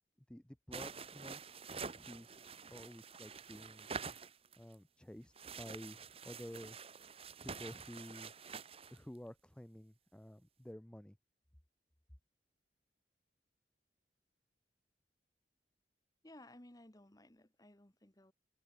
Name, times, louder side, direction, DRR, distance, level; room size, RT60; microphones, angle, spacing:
voice 1, 0.3-1.4 1.9-3.9 4.6-6.8 7.4-8.3 8.9-11.2, equal, 5° left, 0.4 m, -51 dB
sound 1, 0.7-4.8 5.4-9.0, right 5 dB, 35° right, 1.3 m, -48 dB
voice 2, 16.2-18.3, left 1 dB, 20° left, 1.5 m, -58 dB
head